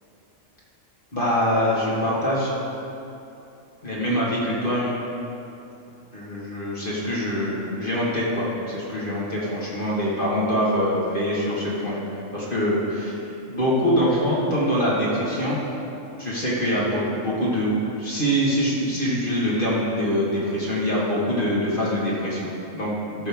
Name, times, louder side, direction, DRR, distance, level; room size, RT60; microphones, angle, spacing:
voice 1, 1.1-2.5 3.8-5.0 6.1-12.0 12.3-13.1 13.5-15.6 16.2-23.3, equal, 45° left, -7 dB, 1.8 m, -24 dB
14.0 x 6.6 x 3.5 m, 2.9 s
omnidirectional pair, 1.3 m